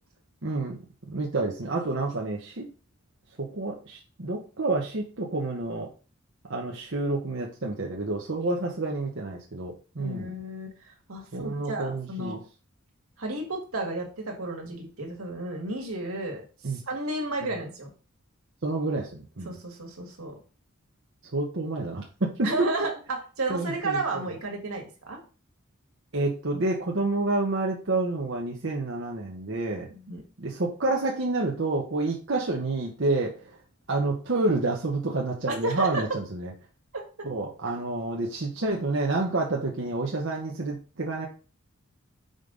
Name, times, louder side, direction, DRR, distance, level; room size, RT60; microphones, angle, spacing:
voice 1, 0.4-0.8 1.1-2.6 3.4-5.9 6.5-10.3 11.3-12.4 16.6-16.8 17.4-17.5 18.6-19.5 21.3-22.7 23.5-24.0 26.1-29.9 30.4-33.4 33.9-36.5 37.2-41.3, right 2 dB, 55° right, -1 dB, 1.0 m, -29 dB
voice 2, 10.0-12.4 13.2-17.9 19.4-20.4 22.4-25.2 29.9-30.2 35.5-36.0, right 2 dB, 80° right, 2 dB, 1.8 m, -32 dB
5.2 x 5.2 x 3.9 m, 0.36 s
head